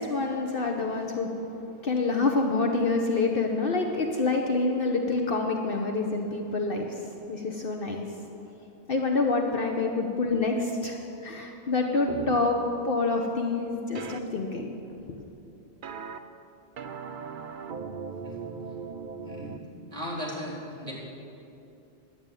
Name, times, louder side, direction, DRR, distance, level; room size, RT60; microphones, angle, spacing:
voice 1, 0.0-1.3 1.8-7.0 7.3-8.1 8.9-14.7 15.1-15.2, left 3 dB, 55° left, 2 dB, 1.0 m, -27 dB
sound 1, 12.1-12.4 13.9-14.2 15.8-16.2 16.8-19.6, right 6 dB, 55° right, 0.7 m, -38 dB
voice 2, 19.9-20.9, equal, 30° right, -4 dB, 3.7 m, -36 dB
11.0 x 8.0 x 8.9 m, 2.8 s
omnidirectional pair, 1.2 m